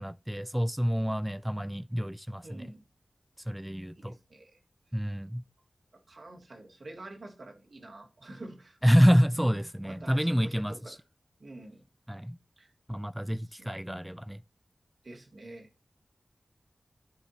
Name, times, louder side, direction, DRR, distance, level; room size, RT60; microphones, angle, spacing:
voice 1, 0.0-2.7 3.5-4.1 4.9-5.4 8.8-10.7 12.1-12.4 12.9-14.4, equal, 5° right, 0.3 m, -27 dB
voice 2, 2.4-2.8 3.9-4.6 6.1-9.5 9.8-11.0 11.4-11.9 12.6-12.7 13.4-13.7 15.0-15.7, right 2 dB, 55° right, 2.1 m, -48 dB
13.0 x 4.7 x 2.8 m
wide cardioid pair, 75°, 0 cm